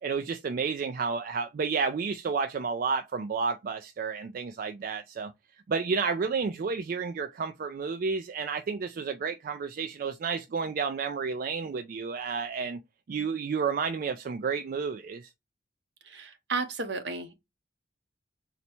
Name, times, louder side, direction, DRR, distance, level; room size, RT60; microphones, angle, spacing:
voice 1, 0.0-5.3 5.7-12.8 13.1-15.3, right 5 dB, 50° right, 0.3 m, -31 dB
voice 2, 16.0-17.3, right 4 dB, 70° right, 0.9 m, -33 dB
4.0 x 2.1 x 4.2 m
head